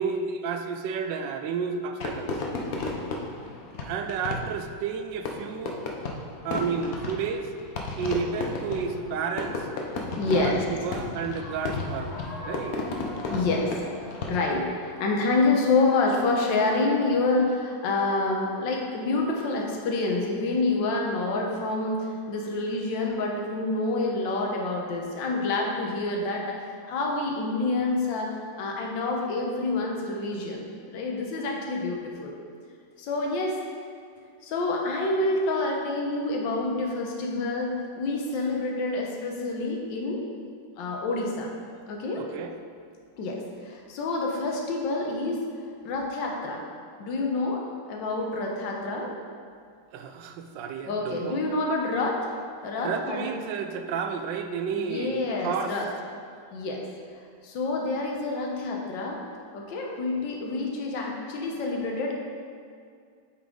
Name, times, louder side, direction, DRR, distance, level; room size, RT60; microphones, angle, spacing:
voice 1, 0.0-2.4 3.8-5.8 6.4-7.5 8.0-9.7 10.3-12.8 42.1-42.6 49.9-51.4 52.8-55.8, right 6 dB, 80° right, 7 dB, 1.2 m, -31 dB
Fireworks, 2.0-14.7, left 3 dB, 60° left, 1.1 m, -34 dB
voice 2, 10.2-10.6 13.3-13.7 14.3-32.4 33.0-33.6 34.4-40.2 40.8-41.5 41.9-42.3 43.2-45.4 45.8-46.6 47.0-49.1 50.9-52.3 52.6-53.3 54.7-55.9 56.5-56.8 57.4-59.2 59.5-62.1, left 3 dB, 75° left, 0 dB, 1.6 m, -27 dB
8.6 x 5.0 x 3.7 m, 2.2 s
omnidirectional pair, 2.0 m